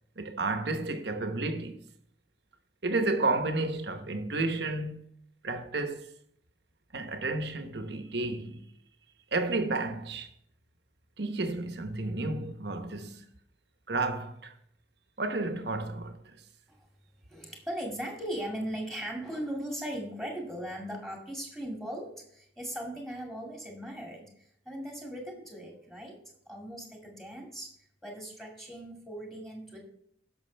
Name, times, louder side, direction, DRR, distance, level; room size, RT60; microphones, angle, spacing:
voice 1, 0.2-1.8 2.8-5.0 5.4-6.1 6.9-8.6 9.3-10.3 11.2-13.3 13.9-14.5 15.2-16.4, right 2 dB, 65° right, 1.0 m, -31 dB
voice 2, 17.3-26.2 26.5-27.7 28.0-29.8, equal, ahead, 2.3 m, -38 dB
16.5 x 6.1 x 3.4 m
head